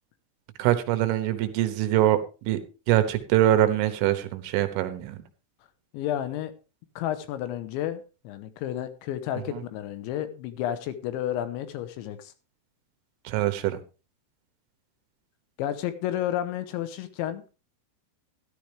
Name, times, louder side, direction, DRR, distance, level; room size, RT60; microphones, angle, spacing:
voice 1, 0.6-2.2 2.5-2.6 2.9-5.2 13.3-13.8, right 13 dB, 80° right, 10 dB, 3.5 m, -23 dB
voice 2, 5.9-6.5 7.0-12.3 15.6-17.4, left 11 dB, 75° left, 11 dB, 3.1 m, -31 dB
13.0 x 11.5 x 3.4 m, 0.32 s
omnidirectional pair, 5.6 m